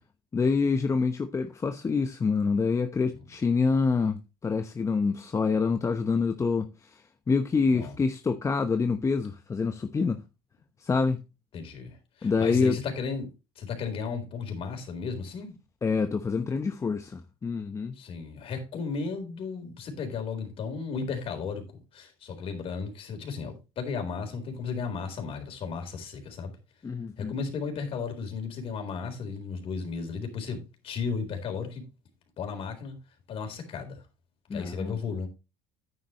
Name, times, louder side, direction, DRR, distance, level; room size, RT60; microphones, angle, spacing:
voice 1, 0.3-7.0 7.3-10.2 10.8-11.2 12.2-12.8 15.8-18.0 26.8-27.3 34.5-35.2, left 4 dB, 25° left, 0.9 m, -26 dB
voice 2, 11.5-15.6 18.0-26.5 27.2-31.8 32.4-33.0 33.3-34.0 34.5-35.3, left 5 dB, 50° left, 4.0 m, -34 dB
9.8 x 9.6 x 3.1 m
hypercardioid pair, 80°, 12 cm